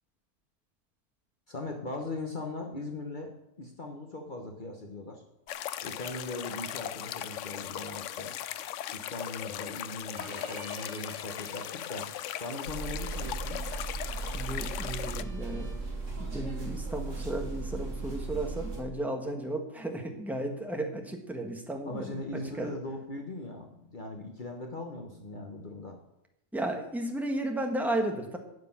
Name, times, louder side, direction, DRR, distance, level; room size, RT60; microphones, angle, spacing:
voice 1, 1.5-3.3 3.6-5.2 5.8-8.3 8.9-12.1 12.4-13.6 21.9-26.0, left 2 dB, 40° left, 2 dB, 1.3 m, -39 dB
sound 1, 5.5-15.2, left 11 dB, 75° left, 0.9 m, -38 dB
Bowed string instrument, 10.1-16.0, right 1 dB, 60° right, 2.2 m, -52 dB
sound 2, 12.7-18.8, right 3 dB, 80° right, 3.1 m, -36 dB
voice 2, 14.3-15.7 16.2-22.1 22.6-22.7 26.5-28.4, right 1 dB, ahead, 3 dB, 1.4 m, -34 dB
9.6 x 6.7 x 9.0 m, 0.85 s
omnidirectional pair, 1.3 m